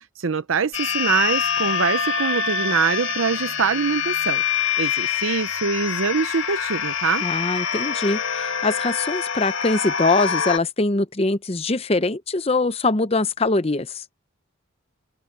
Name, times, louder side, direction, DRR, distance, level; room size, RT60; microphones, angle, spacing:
voice 1, 0.2-4.4 4.8-7.2, right 5 dB, 80° right, 0.7 m, -24 dB
sound 1, 0.7-10.6, left 7 dB, 70° left, 2.1 m, -25 dB
voice 2, 7.2-14.0, left 3 dB, 30° left, 0.7 m, -23 dB
head